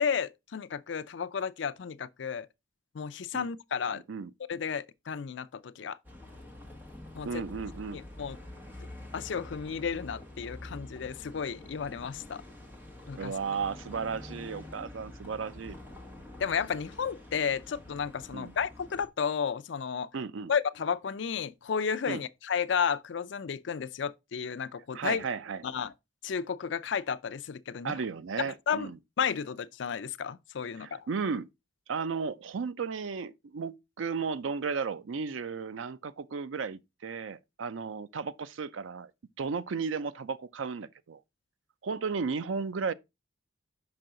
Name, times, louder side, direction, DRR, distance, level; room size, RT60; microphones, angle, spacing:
voice 1, 0.0-2.5 2.9-4.0 4.5-6.0 7.1-7.4 7.9-8.4 9.1-12.4 13.1-13.3 16.4-20.1 20.5-25.2 25.6-25.9 26.2-28.0 28.4-28.9 29.2-31.0, left 6 dB, 70° left, 0.4 m, -32 dB
voice 2, 3.9-4.3 7.2-8.0 13.2-15.8 18.3-18.5 20.1-20.5 22.1-22.2 24.9-25.6 27.8-29.0 30.8-31.5 31.9-39.1 39.4-41.2 41.8-42.9, right 5 dB, 80° right, 0.5 m, -34 dB
Bus, 6.0-19.1, left 1 dB, 10° right, 1.4 m, -47 dB
5.9 x 5.4 x 3.8 m
head